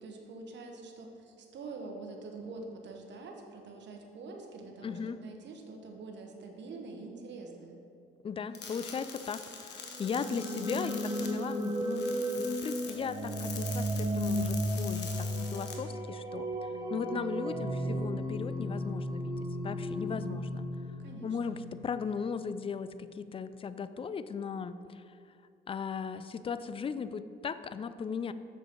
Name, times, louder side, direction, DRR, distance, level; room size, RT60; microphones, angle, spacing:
voice 1, 0.0-7.8 21.0-21.4, right 3 dB, 65° right, 2 dB, 1.1 m, -45 dB
voice 2, 4.8-5.2 8.2-12.1 12.4-19.3 19.6-20.7 21.2-25.0 25.7-28.3, left 6 dB, 30° left, 13 dB, 0.3 m, -37 dB
sound 1, 8.5-15.7, left 5 dB, 60° left, 1.1 m, -45 dB
sound 2, 9.8-21.7, equal, 20° right, 1.1 m, -34 dB
6.7 x 6.6 x 4.4 m, 2.5 s
cardioid pair, 90°, 20 cm